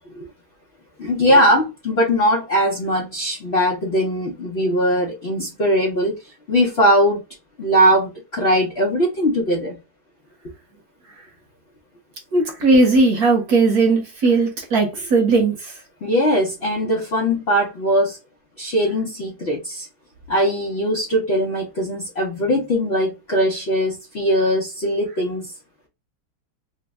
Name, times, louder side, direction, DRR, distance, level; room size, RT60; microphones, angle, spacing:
voice 1, 1.0-7.2 7.6-9.7 16.0-18.2 18.6-19.9 20.3-25.5, equal, 90° left, 0.5 m, -20 dB
voice 2, 12.3-15.7, right 3 dB, 60° right, 1.2 m, -17 dB
3.3 x 2.0 x 3.3 m
omnidirectional pair, 2.2 m